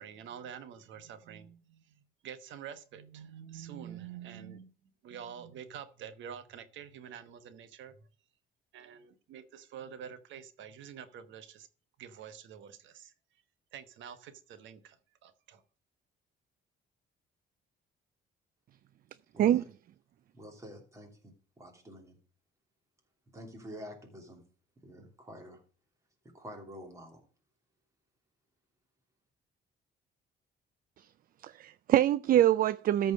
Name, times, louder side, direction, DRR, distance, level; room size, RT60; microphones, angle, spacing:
voice 1, 0.0-1.9 2.2-4.7 5.0-8.1 8.7-11.7 12.0-13.1 13.7-15.0 15.2-15.6, right 8 dB, 80° right, 1.1 m, -47 dB
voice 2, 20.3-22.2 23.3-24.4 24.8-25.6 26.3-27.2, equal, 15° right, 2.9 m, -48 dB
voice 3, 31.4-33.1, right 12 dB, 50° right, 0.4 m, -24 dB
13.5 x 4.6 x 6.3 m
cardioid pair, 140°, 19 cm